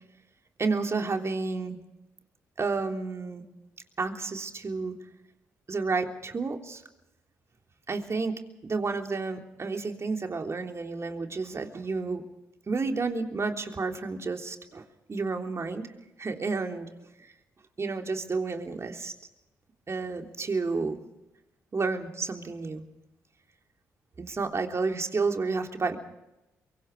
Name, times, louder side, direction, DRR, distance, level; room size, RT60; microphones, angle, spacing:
voice 1, 0.6-1.8 2.6-3.5 4.0-4.9 5.7-6.8 7.9-12.2 12.7-15.9 16.2-16.9 17.2-17.3 17.8-19.1 19.9-21.0 21.7-22.8 24.2-26.0, right 4 dB, 40° right, 4 dB, 3.4 m, -31 dB
24.5 x 24.0 x 4.9 m, 0.91 s
hypercardioid pair, 45°, 8 cm